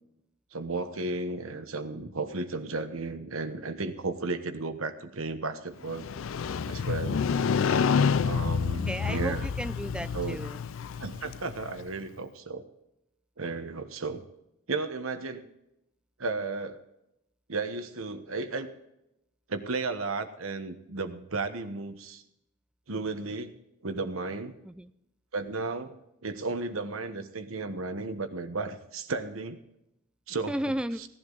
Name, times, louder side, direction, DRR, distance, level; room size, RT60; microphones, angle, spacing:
voice 1, 0.5-6.1 6.6-7.3 8.2-9.5 10.1-10.4 11.0-12.6 13.4-14.2 14.7-15.5 16.2-16.8 17.5-18.7 19.5-22.2 22.9-23.5 23.8-24.5 25.3-26.0 26.2-29.6 30.3-30.5 31.0-31.1, right 3 dB, 75° right, 8 dB, 1.2 m, -34 dB
Motorcycle, 5.9-11.8, left 6 dB, 65° left, 0.4 m, -28 dB
voice 2, 7.3-7.8 8.9-10.6 24.6-24.9 30.5-31.0, equal, 5° right, 11 dB, 0.4 m, -34 dB
17.0 x 11.5 x 4.0 m, 0.83 s
head